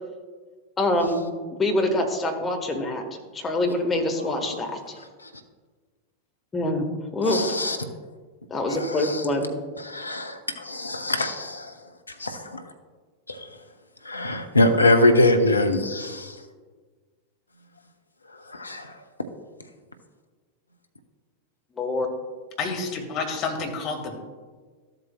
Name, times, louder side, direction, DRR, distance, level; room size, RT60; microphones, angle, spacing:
voice 1, 0.8-1.2 1.6-3.0 3.3-5.0 6.5-6.9 7.1-7.6 8.5-9.5 21.8-22.1, left 1 dB, 15° left, 3 dB, 1.3 m, -25 dB
voice 2, 7.2-7.8 8.7-9.2 9.8-11.7 12.2-12.6 13.3-13.5 14.0-16.4 18.5-18.9, left 1 dB, 80° left, 7 dB, 0.6 m, -23 dB
voice 3, 22.6-24.2, left 4 dB, 35° left, 3 dB, 1.5 m, -29 dB
13.5 x 7.7 x 2.2 m, 1.5 s
figure-of-eight pair, 90°, 0 cm